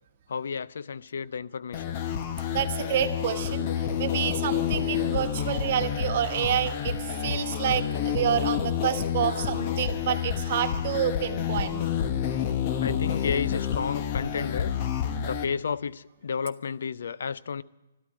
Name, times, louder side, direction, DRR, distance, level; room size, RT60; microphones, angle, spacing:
voice 1, 0.3-2.0 9.3-9.8 12.8-14.7 15.2-17.6, left 6 dB, 60° left, 0.4 m, -32 dB
sound 1, 1.7-15.4, left 8 dB, 35° left, 1.0 m, -29 dB
voice 2, 2.5-11.8, right 9 dB, 45° right, 1.2 m, -28 dB
13.0 x 12.5 x 7.5 m
figure-of-eight pair, 125°, 0 cm